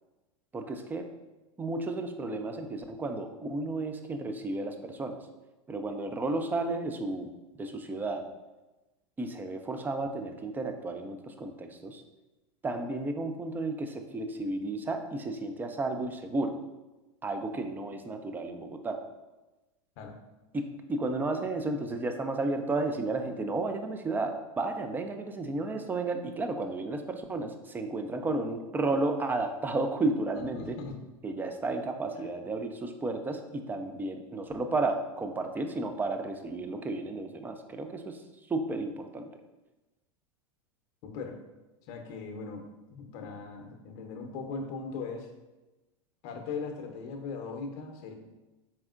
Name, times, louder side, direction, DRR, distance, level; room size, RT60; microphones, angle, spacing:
voice 1, 0.5-1.1 1.6-5.2 5.7-7.3 7.6-8.3 9.2-12.0 12.6-16.5 17.2-19.0 20.5-20.6 20.9-30.8 31.2-38.2 38.5-39.3, right 2 dB, 10° right, 6 dB, 0.3 m, -32 dB
voice 2, 30.3-31.0 32.2-32.3 41.0-41.4 41.9-45.3 46.2-48.1, left 4 dB, 50° left, 4 dB, 0.7 m, -39 dB
4.3 x 3.5 x 2.4 m, 1.1 s
hypercardioid pair, 105°, 17 cm